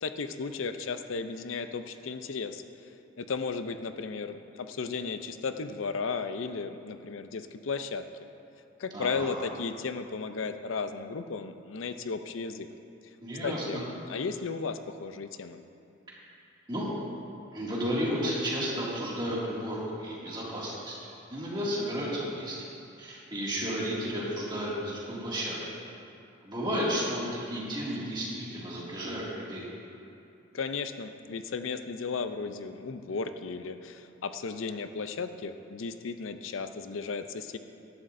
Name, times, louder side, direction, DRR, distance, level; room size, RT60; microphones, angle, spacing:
voice 1, 0.0-2.6 3.2-8.0 8.8-12.7 13.4-15.6 30.5-37.6, left 4 dB, 90° left, 9 dB, 0.5 m, -35 dB
voice 2, 8.9-9.4 13.2-13.8 16.7-16.9 17.5-21.0 21.3-22.6 23.0-25.6 26.4-29.7, equal, 20° right, -6 dB, 2.3 m, -32 dB
15.0 x 11.5 x 2.6 m, 2.6 s
head